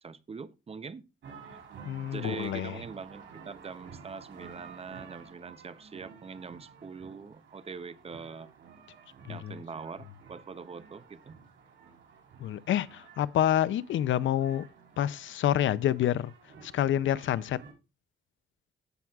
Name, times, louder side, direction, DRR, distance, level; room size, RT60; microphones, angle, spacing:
voice 1, 0.0-1.0 2.1-8.5 9.3-11.4, right 5 dB, 30° right, 0.6 m, -43 dB
sound 1, 1.2-17.7, right 6 dB, 75° right, 4.0 m, -52 dB
voice 2, 1.8-2.8 9.3-9.6 12.4-14.7 15.0-16.3 16.6-17.6, left 11 dB, 75° left, 0.5 m, -28 dB
15.0 x 6.0 x 2.4 m
cardioid pair, 120°, 20 cm